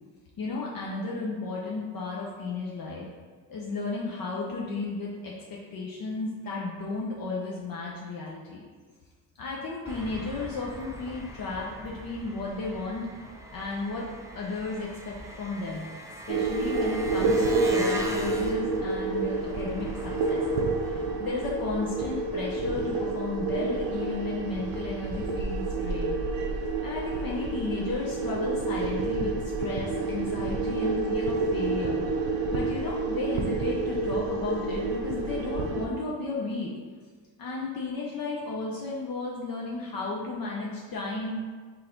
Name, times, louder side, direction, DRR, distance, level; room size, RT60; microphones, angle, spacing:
voice 1, 0.4-3.1 3.5-8.6 9.4-13.1 13.5-14.1 14.3-15.9 16.3-20.4 20.9-26.2 26.8-32.0 32.5-36.7 37.4-41.4, left 3 dB, 50° left, -4 dB, 0.7 m, -34 dB
Engine, 9.9-22.1, right 1 dB, 10° right, 0.3 m, -41 dB
sound 1, 16.3-35.9, right 3 dB, 70° right, 0.7 m, -29 dB
3.8 x 2.6 x 4.4 m, 1.5 s
cardioid pair, 95°, 47 cm